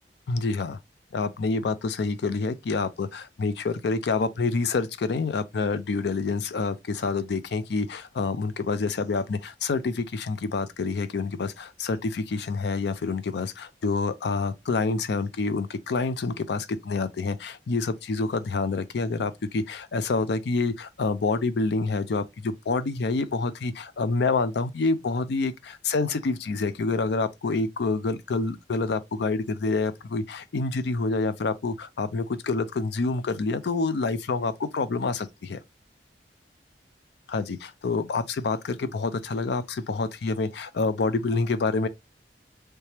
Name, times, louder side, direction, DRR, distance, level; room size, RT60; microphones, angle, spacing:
voice 1, 0.3-0.8 1.1-35.6 37.3-41.9, left 3 dB, 65° left, 0.4 m, -27 dB
3.3 x 2.9 x 3.2 m
head